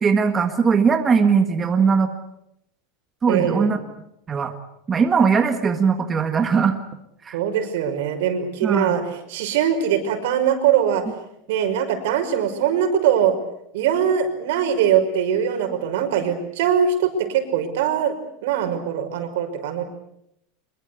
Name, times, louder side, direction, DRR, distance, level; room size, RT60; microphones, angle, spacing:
voice 1, 0.0-2.1 3.2-3.8 4.3-4.5 4.9-6.8 7.2-7.4 8.6-9.0, right 5 dB, 20° right, 6 dB, 1.7 m, -19 dB
voice 2, 3.3-3.7 7.3-9.0 9.3-11.0 11.5-13.3 13.7-18.1 18.4-19.8, right 8 dB, 75° right, 6 dB, 5.6 m, -21 dB
25.0 x 22.5 x 8.3 m, 0.78 s
supercardioid pair, 160°, 0 cm